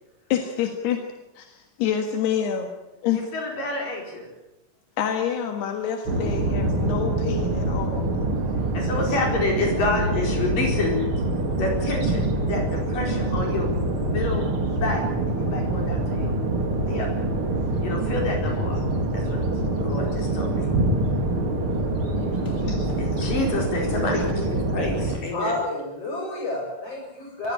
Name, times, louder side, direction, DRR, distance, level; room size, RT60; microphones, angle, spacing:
voice 1, 0.3-1.0 1.4-2.7 3.0-3.3 5.0-8.1 22.2-23.0, left 8 dB, 80° left, 5 dB, 3.7 m, -27 dB
voice 2, 3.1-4.3 8.7-11.0 11.6-16.4 16.9-17.1 17.8-18.8 19.1-20.9 21.2-21.3 22.6-25.5, left 2 dB, 55° left, 1 dB, 6.1 m, -29 dB
sound 1, 6.1-25.2, right 2 dB, 35° right, 3.0 m, -25 dB
voice 3, 25.3-27.5, left 2 dB, 35° left, 0 dB, 8.4 m, -30 dB
22.5 x 15.5 x 10.0 m, 0.95 s
omnidirectional pair, 4.6 m